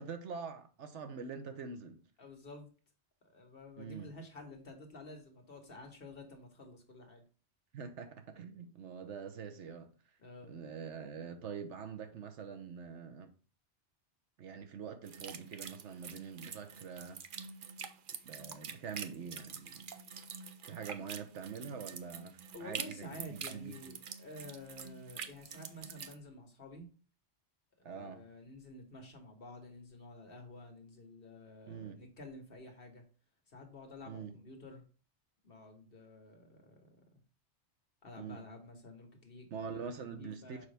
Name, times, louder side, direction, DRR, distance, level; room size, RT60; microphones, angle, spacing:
voice 1, 0.0-2.0 3.8-4.1 7.7-9.9 10.5-13.3 14.4-17.2 18.2-19.9 20.6-22.3 22.6-23.7 27.8-28.2 31.7-32.0 34.1-34.3 38.2-38.4 39.5-40.7, right 6 dB, 90° right, 1.2 m, -44 dB
voice 2, 2.2-2.7 3.3-7.2 10.2-10.6 22.5-26.9 27.8-33.0 33.5-34.8 35.4-37.0 38.0-40.7, left 2 dB, 55° left, 1.7 m, -51 dB
sound 1, 15.0-26.1, right 6 dB, 55° right, 0.7 m, -46 dB
6.9 x 5.4 x 3.5 m
omnidirectional pair, 1.2 m